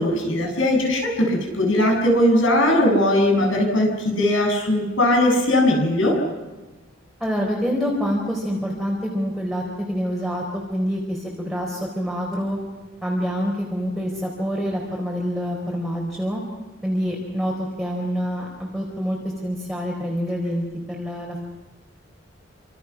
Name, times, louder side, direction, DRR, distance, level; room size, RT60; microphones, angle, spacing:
voice 1, 0.0-6.2, left 1 dB, 80° left, 1 dB, 7.9 m, -19 dB
voice 2, 7.2-12.6 13.0-16.4 16.8-17.5 17.8-21.4, equal, ahead, -3 dB, 4.2 m, -26 dB
28.5 x 26.5 x 6.0 m, 1.2 s
head